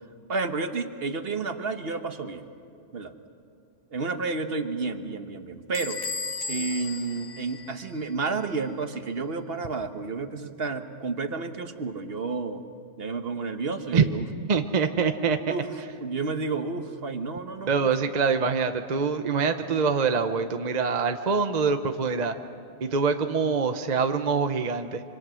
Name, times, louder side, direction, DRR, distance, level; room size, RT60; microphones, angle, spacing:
voice 1, 0.3-2.4 2.9-3.1 3.9-6.0 6.5-12.6 13.0-14.2 15.5-15.7 16.0-17.9, right 4 dB, 55° right, 8 dB, 1.3 m, -31 dB
Bell / Squeak, 5.7-8.3, left 3 dB, 55° left, 1.4 m, -35 dB
voice 2, 14.5-15.5 17.7-22.3 22.8-25.0, right 5 dB, 40° right, 7 dB, 0.8 m, -24 dB
26.0 x 25.5 x 6.3 m, 2.5 s
omnidirectional pair, 1.2 m